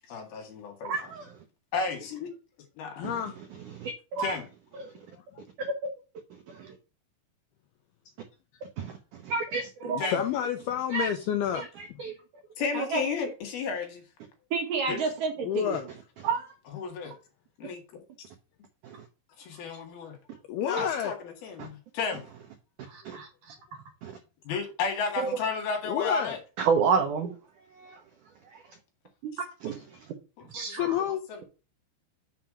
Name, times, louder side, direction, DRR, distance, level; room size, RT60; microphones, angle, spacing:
voice 1, 0.1-0.9 1.7-2.3 2.8-3.1 4.2-4.4 10.0-10.2 12.6-14.0 14.9-15.0 16.7-17.1 17.6-18.0 19.4-20.2 20.6-22.2 24.4-26.4 30.4-30.8 31.3-31.4, left 5 dB, 60° left, 3.5 m, -33 dB
voice 2, 0.8-1.3 3.7-4.3 5.6-5.9 6.5-6.7 8.8-10.1 10.9-11.1 11.5-12.2 16.2-16.5 18.8-19.0 21.6-21.7 23.0-23.2 24.0-24.1 25.2-25.3 26.6-27.3 27.8-28.0 28.5-28.6 29.2-29.3 29.6-29.8, right 5 dB, 80° right, 1.8 m, -30 dB
voice 3, 3.0-3.3 5.1-5.4 9.8-11.6 15.4-15.8 19.7-19.8 20.5-21.2 25.8-26.4 30.7-31.2, left 10 dB, 80° left, 2.3 m, -30 dB
voice 4, 12.7-13.0 14.5-15.9 20.8-20.9 22.8-23.5 30.4-31.0, right 4 dB, 55° right, 2.8 m, -32 dB
7.2 x 6.0 x 4.9 m
omnidirectional pair, 5.3 m